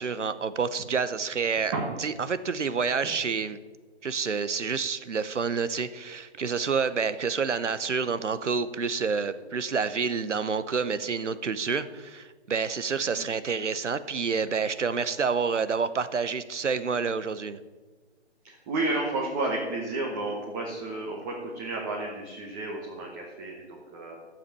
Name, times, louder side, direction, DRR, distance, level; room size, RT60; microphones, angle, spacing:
voice 1, 0.0-1.7 2.0-3.6 4.0-17.6, right 5 dB, 90° right, 14 dB, 1.0 m, -28 dB
voice 2, 18.4-24.2, right 2 dB, 15° right, -1 dB, 1.2 m, -32 dB
12.0 x 7.3 x 6.8 m, 1.3 s
hypercardioid pair, 150°, 35 cm